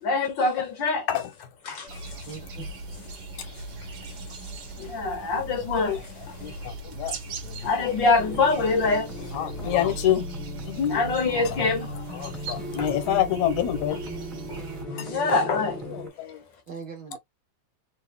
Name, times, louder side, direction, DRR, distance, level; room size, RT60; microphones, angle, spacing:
voice 1, 0.0-1.1 1.6-2.0 2.6-2.7 4.8-6.4 7.6-9.7 10.9-11.9 12.8-12.9 14.5-14.6 15.0-15.9, left 3 dB, 60° left, 1.2 m, -25 dB
sound 1, 1.9-14.8, right 2 dB, 50° right, 1.3 m, -39 dB
voice 2, 2.3-2.6 3.2-3.4 3.9-4.3 6.4-6.6 16.7-17.2, right 5 dB, 70° right, 1.2 m, -42 dB
voice 3, 5.2-5.9 6.4-8.0 9.3-10.2 10.6-11.0 11.3-11.7 12.1-14.0 14.9-15.1 15.9-16.4, left 11 dB, 80° left, 2.3 m, -28 dB
sound 2, 8.2-16.1, equal, 15° right, 1.0 m, -38 dB
4.6 x 2.8 x 3.3 m
omnidirectional pair, 3.3 m